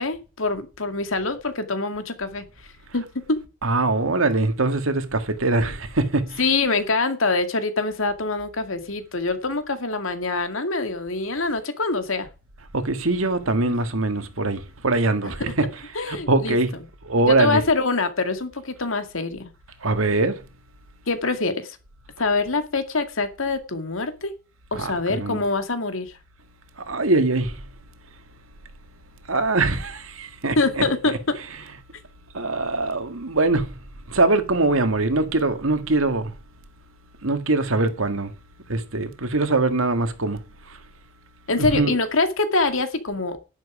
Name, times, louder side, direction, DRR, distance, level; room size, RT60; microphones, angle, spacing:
voice 1, 0.0-2.4 2.9-3.4 6.4-12.3 15.9-16.6 17.3-19.5 21.1-21.8 22.2-24.3 24.7-26.2 30.6-31.2 41.5-43.4, left 3 dB, 75° left, 2.1 m, -24 dB
voice 2, 3.6-6.4 12.7-15.7 16.1-16.7 17.0-17.6 19.8-20.4 24.7-25.4 26.9-27.6 29.3-30.8 32.3-33.7 34.1-36.3 37.2-38.3 38.7-40.4 41.6-41.9, right 2 dB, 80° right, 1.9 m, -22 dB
11.0 x 10.5 x 4.9 m
head